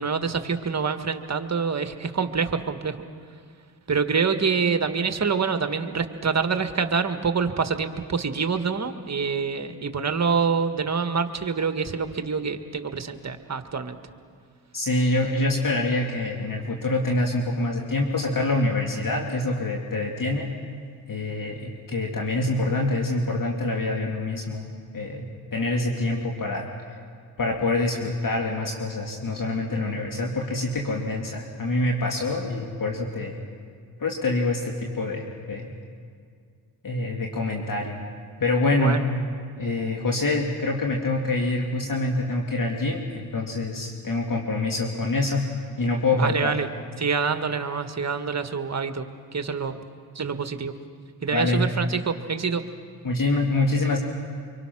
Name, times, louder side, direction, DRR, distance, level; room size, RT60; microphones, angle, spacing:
voice 1, 0.0-3.0 3.9-14.0 38.7-39.0 46.1-46.7 47.0-49.1 49.3-49.8 50.1-50.7 51.2-52.6, right 5 dB, 40° right, 8 dB, 1.7 m, -26 dB
voice 2, 14.7-20.5 21.1-24.6 24.9-25.3 25.5-27.0 27.4-33.4 34.0-35.7 36.8-38.0 38.4-39.0 39.6-45.4 45.8-46.5 51.3-51.7 53.0-54.0, left 2 dB, 50° left, 0 dB, 2.6 m, -26 dB
25.0 x 24.5 x 6.2 m, 2.1 s
cardioid pair, 60°, 43 cm